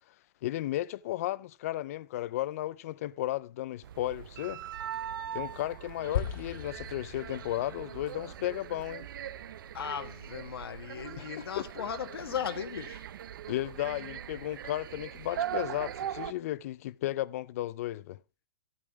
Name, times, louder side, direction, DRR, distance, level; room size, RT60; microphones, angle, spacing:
voice 1, 0.4-4.6 5.3-9.1 11.2-11.4 13.5-18.2, left 14 dB, 40° left, 0.4 m, -34 dB
sound 1, 3.8-16.3, right 10 dB, 60° right, 0.6 m, -41 dB
sound 2, 6.1-10.5, left 8 dB, 70° left, 1.9 m, -40 dB
voice 2, 9.7-13.0, left 8 dB, 90° left, 1.4 m, -37 dB
13.5 x 8.8 x 3.5 m
hypercardioid pair, 165°, 12 cm